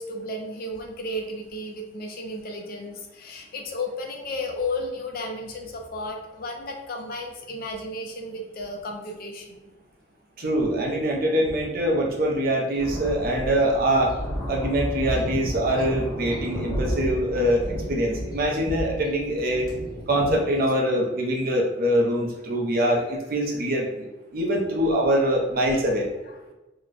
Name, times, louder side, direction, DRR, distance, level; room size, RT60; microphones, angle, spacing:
voice 1, 0.0-9.7 26.2-26.4, left 1 dB, 50° left, 2 dB, 0.5 m, -33 dB
voice 2, 10.4-14.1 14.5-19.7 20.1-24.1 24.3-26.1, right 1 dB, 55° right, 0 dB, 0.7 m, -24 dB
sound 1, 12.8-20.4, equal, 20° left, 0.9 m, -32 dB
2.9 x 2.1 x 3.9 m, 1.1 s
head